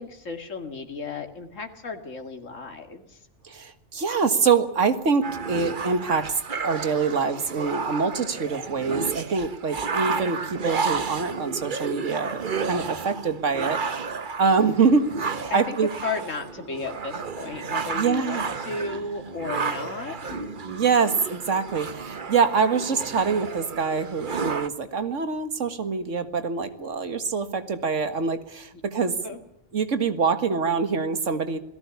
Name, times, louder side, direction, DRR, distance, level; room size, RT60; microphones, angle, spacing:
voice 1, 0.0-3.3 15.5-20.6 28.7-28.8 29.2-29.4, left 4 dB, 85° left, 5 dB, 2.4 m, -34 dB
voice 2, 3.4-6.3 6.6-14.1 14.4-15.9 18.0-18.5 20.7-29.1 29.7-31.6, right 5 dB, 75° right, 10 dB, 2.0 m, -25 dB
sound 1, 5.2-24.7, right 5 dB, 45° right, 1.2 m, -32 dB
28.0 x 18.0 x 7.1 m, 0.82 s
omnidirectional pair, 1.3 m